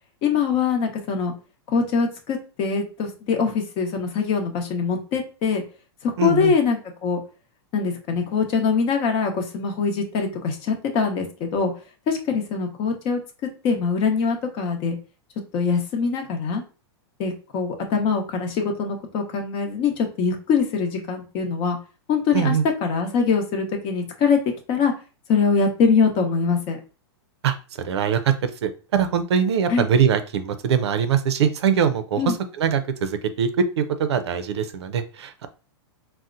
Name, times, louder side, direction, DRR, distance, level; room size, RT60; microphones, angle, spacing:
voice 1, 0.2-1.3 1.7-5.6 6.0-7.2 7.7-11.7 12.1-13.2 13.6-15.0 15.5-16.6 17.2-21.8 22.1-22.6 22.8-24.4 24.7-24.9 25.3-26.8 29.7-29.9 32.2-32.3, left 5 dB, 40° left, 4 dB, 0.8 m, -23 dB
voice 2, 6.2-6.5 22.3-22.6 27.4-27.6 27.8-32.2 32.6-35.5, right 7 dB, 80° right, 10 dB, 0.5 m, -22 dB
4.2 x 2.1 x 2.5 m, 0.34 s
hypercardioid pair, 135°, 14 cm